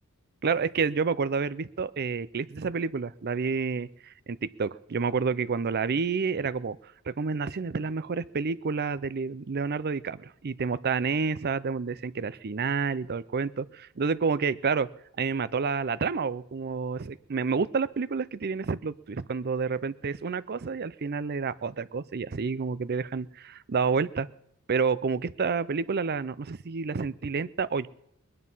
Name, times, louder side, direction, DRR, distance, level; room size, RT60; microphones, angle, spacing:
voice 1, 0.4-6.8 7.1-14.9 15.2-24.3 24.7-27.9, right 5 dB, 45° right, 17 dB, 0.5 m, -29 dB
21.0 x 9.9 x 5.5 m, 0.77 s
head